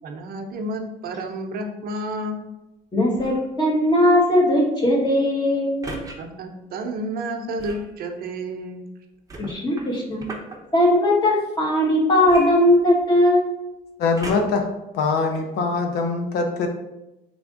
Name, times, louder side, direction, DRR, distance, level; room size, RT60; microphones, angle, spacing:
voice 1, 0.0-2.4 6.2-8.8, right 1 dB, 60° right, 4 dB, 0.7 m, -30 dB
voice 2, 2.9-5.8 9.4-10.2 10.7-13.5, left 1 dB, 25° left, -3 dB, 1.5 m, -19 dB
sound 1, 3.1-3.5 5.8-6.2 7.6-7.9 9.3-10.6 12.2-13.2 14.2-14.7 15.4-15.5, right 2 dB, 20° right, 0.8 m, -37 dB
voice 3, 14.0-14.7 14.9-16.7, left 4 dB, 75° left, 5 dB, 0.7 m, -23 dB
3.7 x 3.5 x 3.7 m, 0.94 s
cardioid pair, 110°, 17 cm